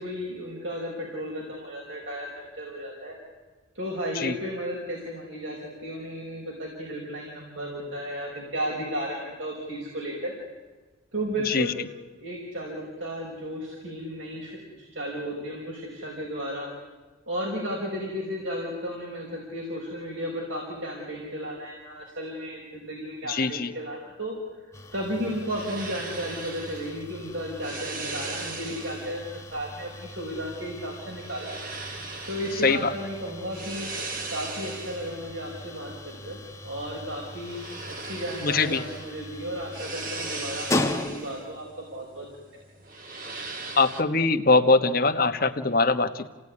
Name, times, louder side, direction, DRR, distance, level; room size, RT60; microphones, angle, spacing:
voice 1, 0.0-3.1 3.7-10.3 11.1-11.8 12.1-16.7 17.3-24.4 24.9-31.6 32.3-33.9 34.3-37.6 37.9-42.3, equal, 75° right, -3 dB, 5.4 m, -34 dB
voice 2, 23.3-23.7 32.6-32.9 38.4-38.8 43.8-46.3, left 3 dB, 45° left, 7 dB, 1.2 m, -22 dB
sound 1, 24.7-41.6, left 2 dB, 15° left, 1.0 m, -38 dB
sound 2, 25.1-44.0, right 3 dB, 40° right, 2.0 m, -39 dB
29.0 x 17.5 x 9.8 m, 1.3 s
head